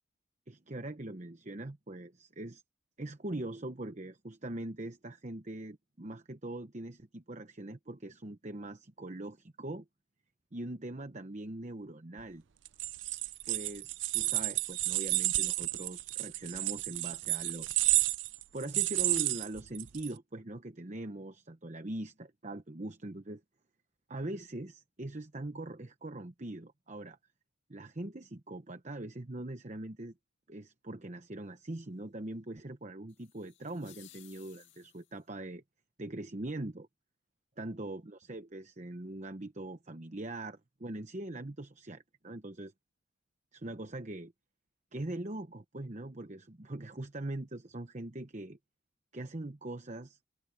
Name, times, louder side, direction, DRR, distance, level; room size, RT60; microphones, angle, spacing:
voice 1, 0.5-2.6 3.0-9.8 10.5-12.4 13.5-17.9 18.5-23.4 24.1-27.2 27.7-30.1 30.5-35.6 36.0-36.9 37.6-42.7 43.5-44.3 44.9-48.6 49.1-50.2, right 1 dB, 35° right, 1.0 m, -42 dB
sound 1, 12.7-20.1, right 18 dB, 60° right, 0.5 m, -31 dB
sound 2, 33.1-35.3, left 13 dB, 60° left, 2.5 m, -59 dB
head